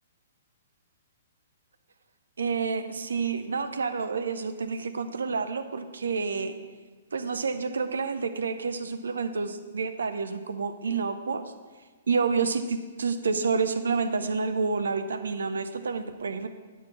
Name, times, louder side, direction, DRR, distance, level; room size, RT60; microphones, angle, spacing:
voice 1, 2.4-6.5 7.1-11.4 12.1-16.5, right 5 dB, 65° right, 10 dB, 0.7 m, -29 dB
10.5 x 4.2 x 7.0 m, 1.4 s
figure-of-eight pair, 120°, 0 cm